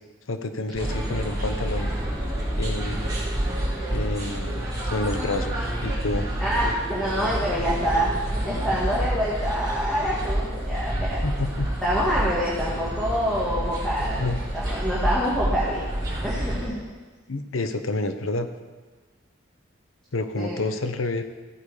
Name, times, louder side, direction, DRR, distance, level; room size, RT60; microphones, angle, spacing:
voice 1, 0.3-1.9 2.6-3.2 3.9-6.3 11.2-11.7 14.2-14.4 17.3-18.5 20.1-21.2, left 2 dB, 80° left, 9 dB, 0.9 m, -29 dB
sound 1, 0.7-16.7, right 1 dB, 15° right, 4.0 m, -28 dB
voice 2, 6.4-8.1 8.4-11.2 11.8-14.3 14.5-15.8 16.2-16.8 20.4-20.6, equal, ahead, -8 dB, 1.9 m, -26 dB
15.0 x 8.6 x 5.0 m, 1.4 s
head